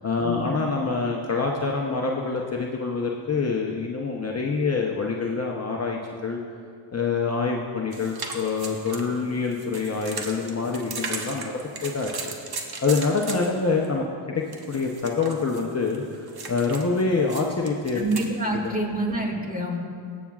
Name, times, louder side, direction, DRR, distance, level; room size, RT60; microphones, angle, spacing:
voice 1, 0.0-6.4 6.9-12.1 12.8-18.0 18.5-18.7, left 4 dB, 30° left, -1 dB, 0.8 m, -26 dB
sound 1, 7.9-13.9 14.5-18.3, right 4 dB, 50° right, 1.1 m, -37 dB
voice 2, 17.9-19.8, right 1 dB, 15° right, -2 dB, 1.9 m, -27 dB
17.5 x 7.2 x 2.4 m, 2.2 s
cardioid pair, 60°, 50 cm